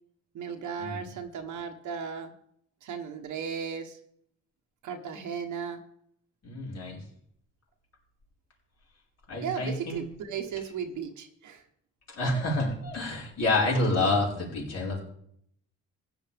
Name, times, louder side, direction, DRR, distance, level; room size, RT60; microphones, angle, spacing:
voice 1, 0.3-2.3 2.8-4.0 4.8-5.8 9.4-11.6, right 7 dB, 75° right, 4 dB, 1.4 m, -36 dB
voice 2, 6.4-7.0 9.3-10.0 12.1-15.0, left 2 dB, 55° left, -3 dB, 5.3 m, -28 dB
15.5 x 10.5 x 3.6 m, 0.68 s
cardioid pair, 90°, 30 cm